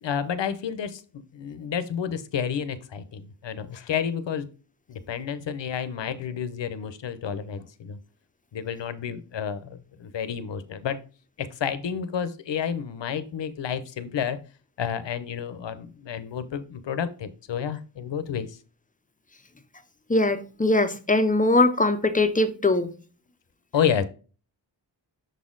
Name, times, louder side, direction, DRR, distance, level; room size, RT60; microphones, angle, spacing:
voice 1, 0.0-4.5 4.9-8.0 8.5-11.0 11.4-14.4 14.8-18.6 23.7-24.0, left 8 dB, 70° left, 0.8 m, -30 dB
voice 2, 20.1-22.9, left 2 dB, 20° left, 0.5 m, -21 dB
6.6 x 4.2 x 3.8 m
wide cardioid pair, 175°, 46 cm